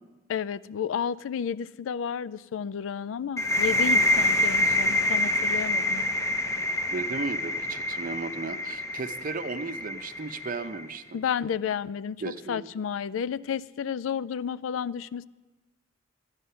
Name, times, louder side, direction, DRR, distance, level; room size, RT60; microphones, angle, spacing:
voice 1, 0.3-6.0 11.1-12.2 12.5-15.3, left 7 dB, 90° left, 0.4 m, -31 dB
sound 1, 3.4-10.9, left 1 dB, 15° left, 0.7 m, -26 dB
voice 2, 6.9-11.2 12.2-12.7, right 4 dB, 45° right, 0.6 m, -35 dB
12.5 x 10.5 x 5.6 m
head